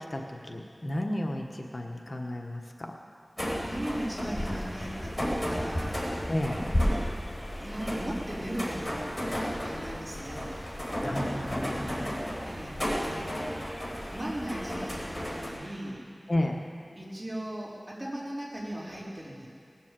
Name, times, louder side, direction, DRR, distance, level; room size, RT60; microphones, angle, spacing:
voice 1, 0.0-2.9 6.3-6.6 11.0-12.2 16.3-16.7, left 1 dB, 45° left, 2 dB, 1.2 m, -33 dB
sound 1, 3.4-15.5, equal, 25° left, 4.2 m, -33 dB
voice 2, 3.4-6.0 7.5-9.1 9.6-10.5 12.5-13.5 14.1-16.0 17.0-19.5, right 1 dB, 30° right, -7 dB, 4.3 m, -38 dB
19.5 x 7.4 x 7.5 m, 2.5 s
wide cardioid pair, 50°, 0 cm